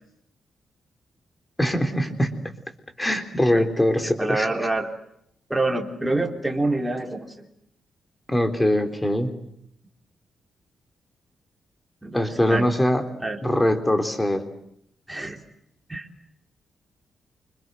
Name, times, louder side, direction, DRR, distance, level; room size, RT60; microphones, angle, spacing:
voice 1, 1.6-2.3 3.0-4.5 8.3-9.3 12.1-13.0 13.4-14.4, left 1 dB, 10° left, 7 dB, 3.7 m, -22 dB
voice 2, 4.0-4.9 5.5-7.5 12.0-12.7 13.2-13.4 15.1-15.4 15.9-16.1, right 2 dB, 10° right, 2 dB, 3.7 m, -26 dB
29.0 x 26.5 x 7.8 m, 0.74 s
wide cardioid pair, 135°, 0 cm